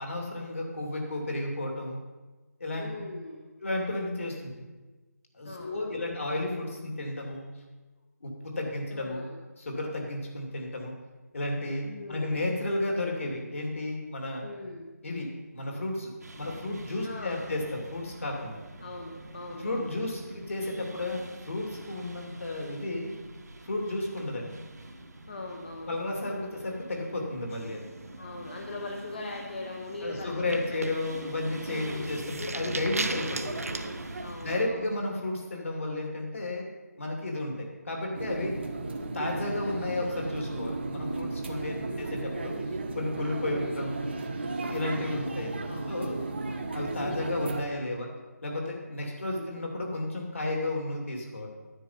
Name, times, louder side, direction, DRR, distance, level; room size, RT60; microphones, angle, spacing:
voice 1, 0.0-2.0 2.6-2.9 3.6-4.6 5.3-7.5 8.2-9.2 9.6-11.0 11.3-14.5 15.0-18.6 19.6-23.1 23.6-24.5 25.9-27.8 30.0-34.0 34.4-36.7 37.0-38.5 39.0-42.6 42.9-44.0 44.6-46.2 46.7-48.1 48.4-51.5, left 2 dB, 50° left, 1 dB, 2.5 m, -33 dB
voice 2, 2.8-3.5 5.4-6.1 8.9-9.4 11.8-12.4 14.4-14.9 17.0-17.4 18.8-19.9 25.3-25.9 28.2-30.8 31.7-32.2 33.3-33.8 34.2-34.9 38.0-38.5 41.8-42.3 43.4-43.9 45.6-46.3 47.0-47.5 49.2-49.6, left 2 dB, 35° left, 1 dB, 0.9 m, -41 dB
sound 1, 16.2-34.7, right 2 dB, 75° right, 1.4 m, -44 dB
sound 2, 27.5-28.4 28.7-29.0 29.4-29.7 30.3-34.6, right 3 dB, 60° right, 0.8 m, -38 dB
sound 3, 38.1-47.6, right 2 dB, 40° right, 1.0 m, -34 dB
10.0 x 9.0 x 5.7 m, 1.2 s
figure-of-eight pair, 175°, 9 cm